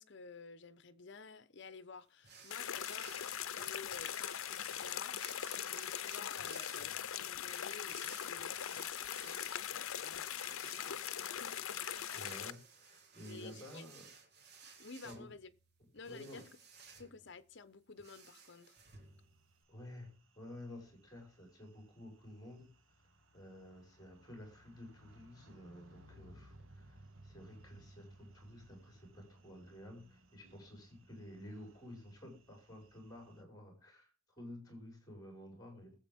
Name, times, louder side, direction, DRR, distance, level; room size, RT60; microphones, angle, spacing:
voice 1, 0.0-11.6 13.2-13.8 14.8-15.5 15.9-16.6 17.0-18.8, left 4 dB, 55° left, 0.9 m, -53 dB
sound 1, 2.2-19.6, right 5 dB, 50° right, 2.2 m, -57 dB
sound 2, 2.5-12.5, left 10 dB, 85° left, 0.6 m, -41 dB
voice 2, 12.1-14.0 15.0-15.3 16.0-16.4 19.7-22.7 23.3-27.0 27.2-36.0, left 1 dB, 20° left, 5.4 m, -52 dB
sound 3, 18.8-33.4, right 1 dB, 70° right, 1.4 m, -62 dB
21.0 x 7.8 x 3.6 m
head